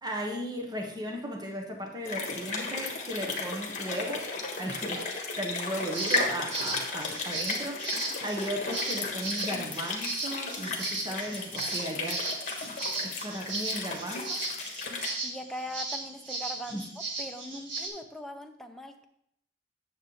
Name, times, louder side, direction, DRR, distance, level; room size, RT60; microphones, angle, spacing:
voice 1, 0.0-4.3 4.6-5.1 5.3-12.3 12.6-14.4 16.7-16.8, equal, 20° right, 1 dB, 1.1 m, -36 dB
sound 1, 2.0-15.1, left 3 dB, 40° left, 1.5 m, -35 dB
sound 2, 5.9-17.9, right 2 dB, 75° right, 1.8 m, -36 dB
voice 2, 15.2-16.8 17.2-19.1, equal, ahead, 4 dB, 0.6 m, -40 dB
9.5 x 7.2 x 3.2 m, 0.73 s
head